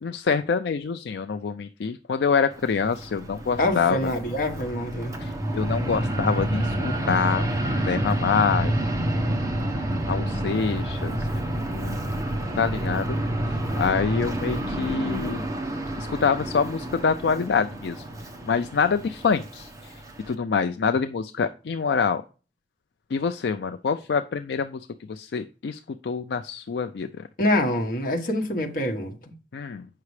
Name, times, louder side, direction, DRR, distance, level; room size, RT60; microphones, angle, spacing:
voice 1, 0.0-4.1 5.2-8.8 10.1-11.3 11.7-12.2 12.6-15.4 16.0-18.0 18.5-19.7 20.3-22.2 23.1-27.3 29.5-29.9, left 5 dB, 70° left, 0.4 m, -26 dB
Fixed-wing aircraft airplane, 2.5-20.3, right 1 dB, 20° right, 1.0 m, -29 dB
voice 2, 3.6-5.1 27.4-29.3, left 1 dB, 50° left, 1.3 m, -25 dB
8.3 x 5.8 x 3.2 m
head